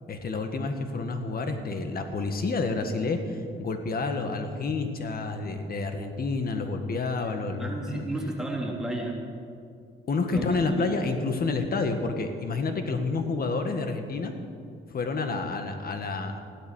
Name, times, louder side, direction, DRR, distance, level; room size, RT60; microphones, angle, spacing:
voice 1, 0.1-8.0 10.1-14.3 14.9-16.4, left 3 dB, 50° left, 6 dB, 1.8 m, -29 dB
voice 2, 7.6-9.2 10.3-10.9, right 1 dB, 5° right, -2 dB, 3.3 m, -32 dB
15.5 x 12.5 x 6.4 m, 2.4 s
cardioid pair, 90°, 20 cm